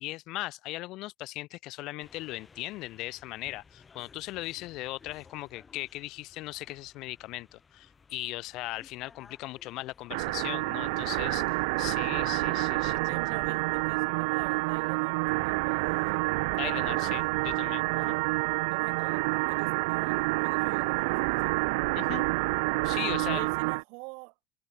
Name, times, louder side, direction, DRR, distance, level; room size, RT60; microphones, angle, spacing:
voice 1, 0.0-11.4 11.8-13.4 16.6-18.2 21.9-22.2 22.8-23.5, left 19 dB, 50° left, 1.1 m, -38 dB
sound 1, 2.0-17.9, left 5 dB, 15° left, 6.1 m, -59 dB
sound 2, 10.1-23.8, right 28 dB, 85° right, 1.0 m, -28 dB
voice 2, 10.9-11.4 12.9-17.0 17.8-21.6 22.9-24.5, right 35 dB, 65° right, 3.5 m, -45 dB
cardioid pair, 170°, 0 cm